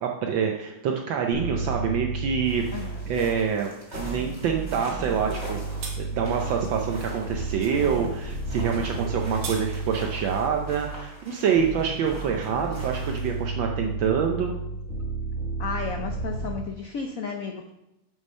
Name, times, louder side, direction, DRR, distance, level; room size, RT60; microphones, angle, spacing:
voice 1, 0.0-5.6 6.0-14.6, right 7 dB, 70° right, 2 dB, 1.3 m, -26 dB
sound 1, 1.3-3.5 3.9-11.1 11.6-16.6, right 3 dB, 40° left, 3.2 m, -32 dB
sound 2, 2.4-13.4, equal, 20° right, 2.8 m, -44 dB
sound 3, 5.3-5.5 5.8-6.0 9.0-9.6, right 5 dB, 90° right, 2.1 m, -35 dB
voice 2, 15.6-17.7, left 5 dB, 85° left, 4 dB, 0.7 m, -33 dB
7.3 x 6.5 x 5.3 m, 0.88 s
omnidirectional pair, 2.4 m